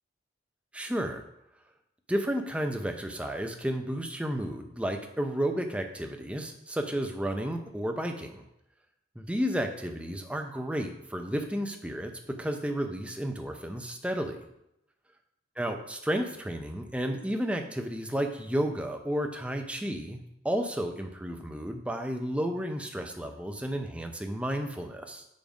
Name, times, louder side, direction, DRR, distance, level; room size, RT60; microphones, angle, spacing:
voice 1, 0.7-1.2 2.1-8.4 9.2-12.1 12.4-14.4 15.6-20.2 20.4-25.2, equal, 5° right, 4 dB, 0.6 m, -32 dB
7.2 x 5.3 x 5.2 m, 0.82 s
head